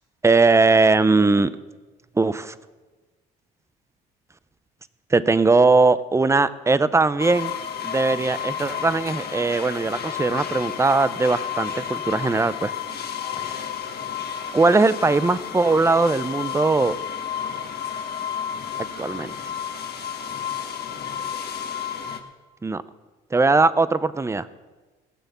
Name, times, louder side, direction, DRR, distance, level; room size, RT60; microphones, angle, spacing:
voice 1, 0.2-1.5 2.2-2.5 5.1-7.5 7.8-12.7 13.3-13.7 14.5-16.9 19.0-19.3 22.6-22.8 23.3-24.5, right 3 dB, 15° right, 15 dB, 0.6 m, -20 dB
sound 1, 7.2-22.2, left 8 dB, 50° left, 1.5 m, -31 dB
18.5 x 7.0 x 6.8 m, 1.2 s
cardioid pair, 90°, 21 cm